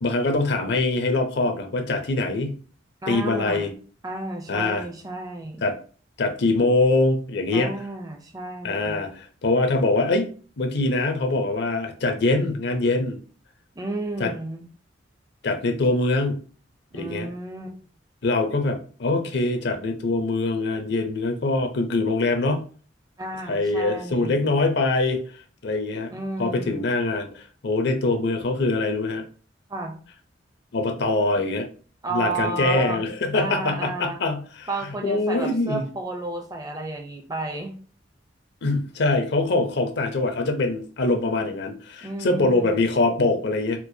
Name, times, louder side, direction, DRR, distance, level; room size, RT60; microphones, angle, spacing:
voice 1, 0.0-2.6 3.1-3.7 4.5-4.8 5.6-5.7 6.2-7.7 8.6-10.3 10.6-13.2 14.2-14.3 15.4-16.4 16.9-17.3 18.2-22.6 23.5-25.2 25.6-26.1 26.4-29.2 30.7-31.7 32.1-34.7 35.0-35.8 38.6-43.8, left 2 dB, 65° left, 5 dB, 0.6 m, -23 dB
voice 2, 3.0-3.7 4.0-5.6 7.5-9.0 13.8-14.6 16.9-17.8 23.2-24.4 26.1-26.8 29.7-30.0 32.0-33.1 33.3-34.2 34.7-37.7 42.0-42.8, right 2 dB, 20° right, 4 dB, 0.5 m, -32 dB
4.4 x 2.1 x 2.6 m, 0.40 s
head